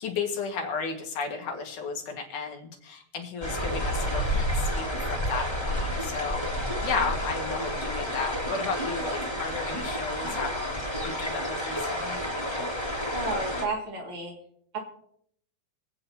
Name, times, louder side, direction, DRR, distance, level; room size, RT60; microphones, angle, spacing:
voice 1, 0.0-12.3, left 5 dB, 85° left, 2 dB, 3.3 m, -34 dB
sound 1, 3.4-13.6, equal, 10° left, 1.7 m, -30 dB
voice 2, 13.1-14.3 14.7-14.8, right 3 dB, 45° right, -1 dB, 3.1 m, -32 dB
24.5 x 8.8 x 2.9 m, 0.68 s
omnidirectional pair, 3.5 m